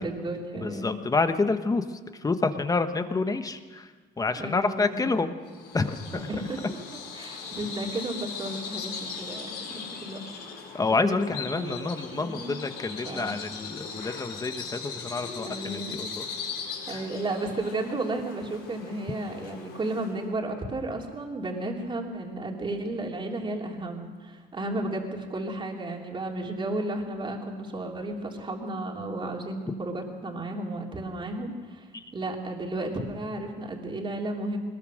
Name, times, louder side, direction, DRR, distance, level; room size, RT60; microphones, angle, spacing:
voice 1, 0.0-1.0 4.4-5.2 6.1-6.8 7.1-10.3 10.9-11.8 12.1-12.6 13.0-13.3 15.4-16.0 16.9-34.6, right 2 dB, 30° right, 1 dB, 3.4 m, -33 dB
voice 2, 0.6-1.8 2.2-3.9 4.2-5.3 5.7-5.9 6.2-6.3 10.7-16.2 31.9-32.0, left 3 dB, 20° left, 9 dB, 1.2 m, -28 dB
Bird vocalization bird call bird song, 5.5-20.3, left 5 dB, 75° left, 5.1 m, -39 dB
21.5 x 20.5 x 6.5 m, 1.4 s
cardioid pair, 110°, 17 cm